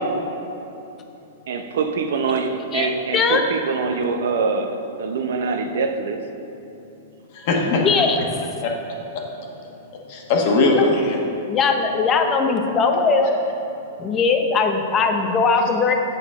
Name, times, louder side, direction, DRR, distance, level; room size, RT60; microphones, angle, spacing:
voice 1, 1.5-4.7 5.0-6.2, right 5 dB, 75° right, 6 dB, 0.6 m, -24 dB
voice 2, 2.7-3.4 7.7-8.2 10.8-10.9 11.5-13.4 14.0-15.9, left 4 dB, 25° left, 4 dB, 0.7 m, -20 dB
voice 3, 7.3-8.1 8.6-8.8 9.1-9.2 10.1-11.2, left 2 dB, 50° left, 0 dB, 1.2 m, -20 dB
7.6 x 6.9 x 3.6 m, 2.9 s
hypercardioid pair, 140°, 0 cm